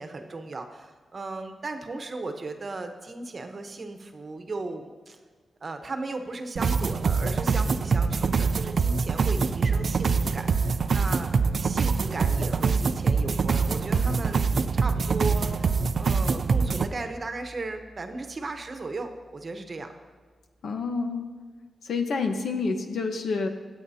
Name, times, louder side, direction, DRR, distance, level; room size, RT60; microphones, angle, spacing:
voice 1, 0.0-5.2 5.6-11.3 11.6-14.5 14.7-19.9, right 3 dB, 40° right, 6 dB, 1.0 m, -36 dB
sound 1, 6.6-16.9, right 5 dB, 55° right, 0.4 m, -24 dB
sound 2, 13.9-19.6, right 3 dB, 60° left, 2.5 m, -42 dB
voice 2, 20.6-21.3 21.8-23.5, left 4 dB, 75° left, 5 dB, 1.1 m, -28 dB
24.0 x 8.0 x 2.8 m, 1.5 s
wide cardioid pair, 120°, 0 cm